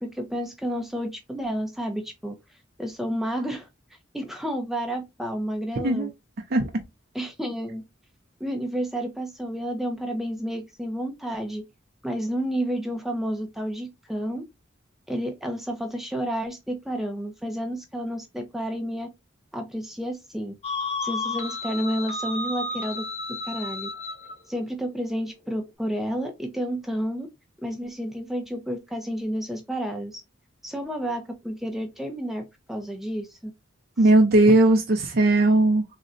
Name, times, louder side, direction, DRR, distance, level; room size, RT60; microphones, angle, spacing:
voice 1, 0.0-2.4 2.8-3.7 4.1-6.1 7.1-7.8 8.4-11.6 12.0-14.4 15.1-19.1 19.5-20.5 21.0-23.0 23.4-23.9 24.5-27.3 27.6-30.2 30.6-33.5 34.0-34.1 34.5-34.6, equal, ahead, 0.4 m, -30 dB
sound 1, 20.6-24.4, left 3 dB, 35° left, 0.9 m, -32 dB
voice 2, 34.0-35.8, right 2 dB, 55° right, 0.5 m, -18 dB
3.7 x 2.1 x 2.4 m
head